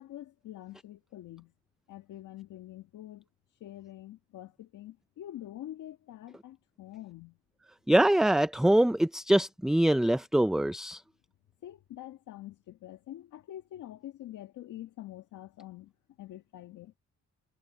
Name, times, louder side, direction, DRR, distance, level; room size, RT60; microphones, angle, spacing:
voice 1, 0.0-1.5 1.9-7.4 11.6-16.9, left 13 dB, 80° left, 1.8 m, -46 dB
voice 2, 7.9-11.0, right 1 dB, ahead, 0.4 m, -24 dB
cardioid pair, 90°, 30 cm